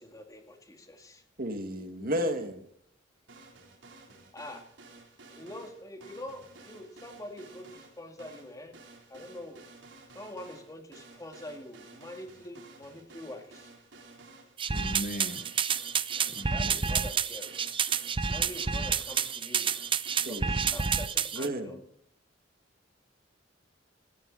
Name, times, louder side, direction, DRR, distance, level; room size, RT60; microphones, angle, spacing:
voice 1, 0.0-1.2 4.1-4.6 5.3-8.7 9.1-9.6 10.1-13.7 16.2-16.3 16.5-17.6 18.3-19.7 20.3-21.8, left 1 dB, 20° left, 2.4 m, -45 dB
voice 2, 1.4-2.6 20.3-20.5 21.3-21.8, equal, 50° right, 2.3 m, -32 dB
sound 1, 3.3-20.7, right 3 dB, 80° right, 4.1 m, -53 dB
sound 2, 14.6-21.5, right 6 dB, 30° right, 0.6 m, -29 dB
voice 3, 14.7-15.5 16.3-16.9, left 1 dB, 45° left, 1.1 m, -39 dB
17.5 x 15.0 x 4.3 m
head